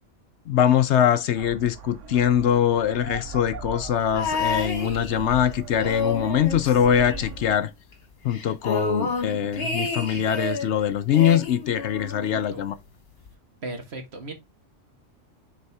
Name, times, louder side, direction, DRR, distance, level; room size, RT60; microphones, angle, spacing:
voice 1, 0.5-7.7 8.2-12.7, left 9 dB, 70° left, 0.9 m, -22 dB
sound 1, 1.3-7.5, right 4 dB, 85° right, 1.2 m, -39 dB
sound 2, 4.1-5.4 5.7-7.7 7.9-8.0 8.3-10.7 11.1-12.4 13.3-13.4, left 3 dB, 55° left, 1.6 m, -29 dB
voice 2, 12.2-12.7 13.6-14.3, right 2 dB, 60° right, 1.7 m, -37 dB
6.8 x 4.1 x 3.4 m
omnidirectional pair, 1.3 m